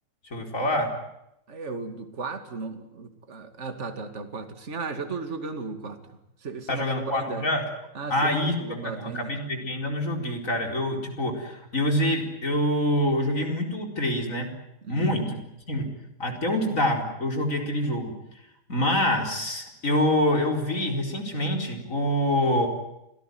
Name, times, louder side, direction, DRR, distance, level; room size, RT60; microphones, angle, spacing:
voice 1, 0.3-0.9 6.7-7.6 8.1-14.5 14.9-15.4 15.7-15.9 16.2-18.1 18.7-22.7, left 1 dB, 35° left, 4 dB, 4.8 m, -26 dB
voice 2, 1.5-7.4 7.9-9.3 14.8-15.4 16.5-16.6, right 4 dB, 30° right, 7 dB, 2.6 m, -36 dB
27.0 x 18.0 x 9.5 m, 0.84 s
omnidirectional pair, 2.4 m